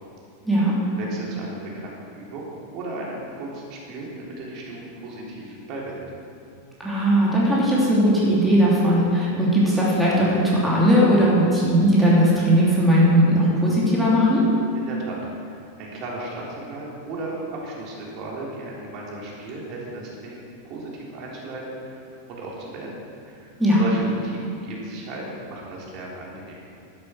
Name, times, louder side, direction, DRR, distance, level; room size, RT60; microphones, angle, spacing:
voice 1, 1.0-6.0 14.7-22.9 23.3-26.6, right 2 dB, 40° right, -4 dB, 3.5 m, -35 dB
voice 2, 6.8-14.4 23.6-23.8, equal, 5° right, -6 dB, 2.9 m, -18 dB
12.0 x 10.5 x 6.2 m, 2.5 s
figure-of-eight pair, 90°, 0 cm